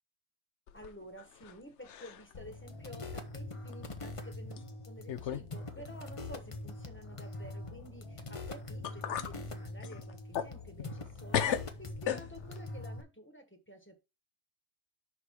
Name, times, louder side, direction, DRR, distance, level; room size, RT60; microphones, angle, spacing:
sound 1, 0.7-1.6 1.8-2.3 2.8-2.9 3.7-3.8 4.6-4.7 5.1-5.5 5.8-5.9 8.4-8.5 8.8-9.3 9.8-11.1 11.3-12.6, left 9 dB, 65° left, 1.0 m, -36 dB
voice 1, 0.7-14.0, equal, 10° left, 5 dB, 1.4 m, -51 dB
sound 2, 2.3-13.0, left 2 dB, 30° left, 0.8 m, -43 dB
6.1 x 4.9 x 4.7 m, 0.26 s
omnidirectional pair, 1.4 m